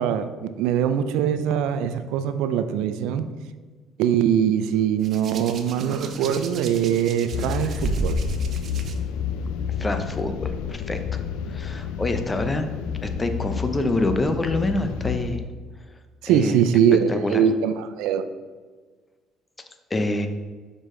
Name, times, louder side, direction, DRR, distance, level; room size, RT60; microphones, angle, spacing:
voice 1, 0.0-3.3 4.0-8.2 16.2-18.2, right 8 dB, 85° right, 10 dB, 0.4 m, -22 dB
Hands, 5.0-8.9 10.0-10.2, right 3 dB, 55° right, 0.7 m, -32 dB
sound 1, 7.3-15.4, left 7 dB, 85° left, 0.4 m, -30 dB
voice 2, 9.8-11.2 11.5-12.7 13.0-15.4 16.3-16.6 17.1-17.4 19.9-20.3, left 2 dB, 20° left, 7 dB, 0.7 m, -26 dB
6.3 x 5.1 x 3.8 m, 1.4 s
supercardioid pair, 85°, 0 cm